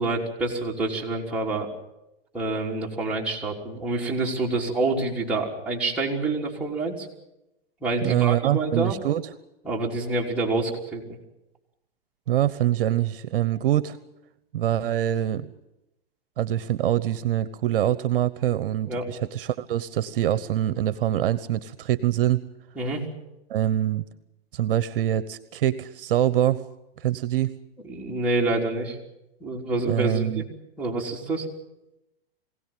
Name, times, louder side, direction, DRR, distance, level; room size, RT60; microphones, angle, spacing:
voice 1, 0.0-1.7 2.3-7.1 7.8-9.0 9.6-11.0 18.9-19.1 22.8-23.0 27.8-29.0 29.4-30.5 30.8-31.5, right 2 dB, 5° right, -4 dB, 3.8 m, -27 dB
voice 2, 8.0-9.3 12.3-14.0 14.5-15.5 16.4-22.4 23.5-24.1 24.5-26.6 27.0-27.6 29.9-30.4, right 12 dB, 60° right, 16 dB, 1.0 m, -24 dB
23.5 x 17.5 x 9.1 m, 0.92 s
hypercardioid pair, 140°, 31 cm